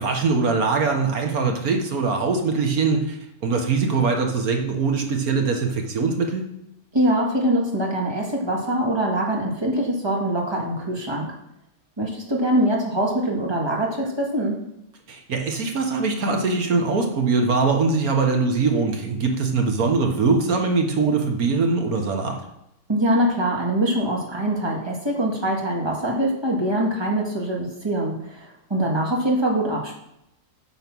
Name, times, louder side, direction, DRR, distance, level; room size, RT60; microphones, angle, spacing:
voice 1, 0.0-6.4 15.1-22.4, right 4 dB, 85° right, 3 dB, 1.8 m, -22 dB
voice 2, 6.9-11.3 12.0-14.6 22.9-29.9, right 1 dB, 20° right, -1 dB, 2.0 m, -23 dB
9.0 x 6.4 x 6.1 m, 0.82 s
omnidirectional pair, 1.5 m